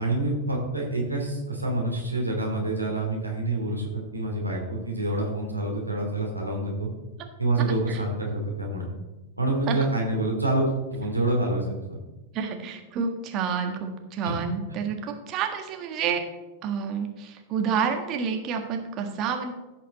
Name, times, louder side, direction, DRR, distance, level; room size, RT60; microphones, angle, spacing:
voice 1, 0.0-6.9 7.4-8.9 9.4-12.0 14.2-14.4, right 2 dB, 85° right, -2 dB, 2.8 m, -27 dB
voice 2, 12.3-16.2 16.6-19.5, right 6 dB, 35° right, 4 dB, 1.6 m, -29 dB
16.0 x 5.9 x 4.2 m, 1.1 s
figure-of-eight pair, 90°, 0 cm